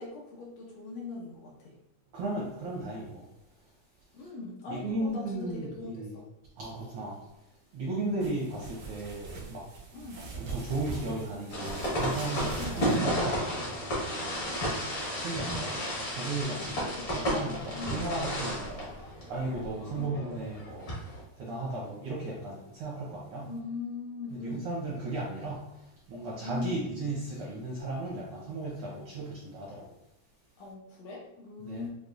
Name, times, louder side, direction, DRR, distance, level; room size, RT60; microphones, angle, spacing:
voice 1, 0.0-1.7 4.1-6.2 9.9-10.2 12.5-12.8 15.5-15.7 16.5-17.2 17.7-18.1 19.9-20.1 23.4-24.7 26.4-27.1 30.6-31.9, left 3 dB, 75° left, -2 dB, 1.6 m, -40 dB
voice 2, 2.1-3.3 4.7-6.2 6.6-7.2 7.7-9.7 10.3-13.7 15.2-15.6 16.1-20.9 21.4-23.5 24.3-29.9 31.6-31.9, right 2 dB, 75° right, -5 dB, 1.3 m, -35 dB
sound 1, 8.2-13.0, right 4 dB, 90° right, 2.5 m, -42 dB
sound 2, 11.5-21.2, equal, 55° left, 0.9 m, -33 dB
6.4 x 2.3 x 2.4 m, 0.89 s
omnidirectional pair, 3.3 m